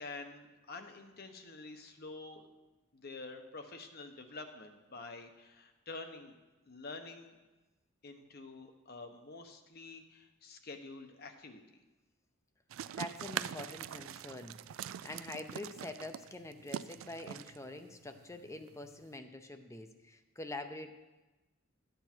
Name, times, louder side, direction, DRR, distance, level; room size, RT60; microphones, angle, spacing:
voice 1, 0.0-2.5 2.9-6.3 6.6-7.4 8.0-11.6, left 3 dB, 50° left, 6 dB, 1.0 m, -48 dB
sound 1, 12.7-19.1, right 9 dB, 75° right, 0.3 m, -43 dB
voice 2, 13.0-20.9, left 2 dB, 15° left, 8 dB, 0.6 m, -45 dB
12.5 x 8.0 x 4.5 m, 1.1 s
head